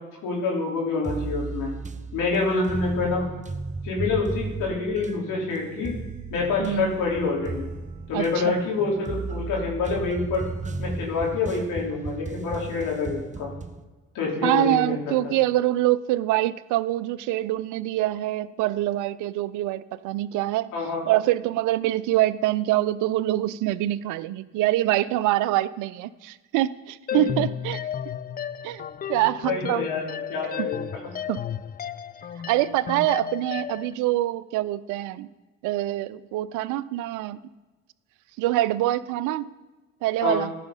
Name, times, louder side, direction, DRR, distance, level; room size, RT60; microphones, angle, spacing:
voice 1, 0.2-1.7 2.1-3.2 3.8-5.9 6.3-7.7 8.1-10.4 10.8-13.5 14.1-15.3 20.7-21.0 27.2-27.4 29.5-30.8 40.2-40.4, left 4 dB, 70° left, -3 dB, 3.0 m, -27 dB
sound 1, 1.0-13.8, right 3 dB, 20° right, 0.7 m, -35 dB
voice 2, 6.6-6.9 8.1-8.6 14.4-20.7 21.1-27.8 28.6-28.8 29.1-29.9 30.6-30.7 31.3-31.4 32.5-35.3 35.6-37.4 38.4-39.5 40.0-40.5, right 15 dB, 65° right, 18 dB, 0.5 m, -25 dB
sound 2, 27.1-33.9, left 9 dB, 25° left, 0.4 m, -33 dB
13.5 x 5.0 x 5.4 m, 1.2 s
hypercardioid pair, 50°, 34 cm